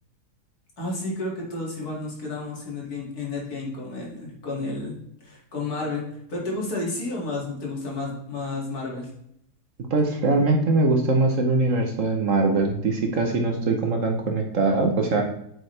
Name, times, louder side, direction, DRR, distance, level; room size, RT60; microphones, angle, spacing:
voice 1, 0.8-9.1, left 2 dB, 60° left, -3 dB, 2.8 m, -31 dB
voice 2, 9.9-15.2, right 3 dB, 55° right, 3 dB, 1.2 m, -22 dB
8.6 x 6.4 x 3.3 m, 0.73 s
omnidirectional pair, 1.8 m